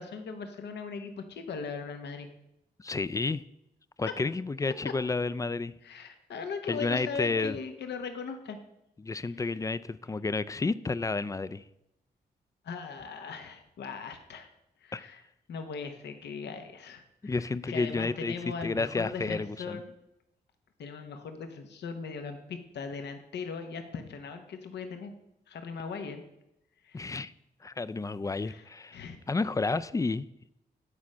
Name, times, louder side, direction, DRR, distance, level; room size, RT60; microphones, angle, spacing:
voice 1, 0.0-2.3 4.8-4.9 5.8-8.6 9.1-9.4 12.6-14.5 14.8-15.2 15.5-19.9 20.8-25.1 25.5-26.2 26.8-27.1 28.4-28.7 28.9-29.2, left 5 dB, 80° left, 0.9 m, -39 dB
voice 2, 2.8-3.4 4.0-5.7 6.7-7.6 9.0-11.6 14.9-15.0 17.2-18.3 18.6-19.8 26.9-27.3 27.6-29.0 29.3-30.3, left 3 dB, 20° left, 0.4 m, -31 dB
8.4 x 4.2 x 6.2 m
cardioid pair, 55°, 17 cm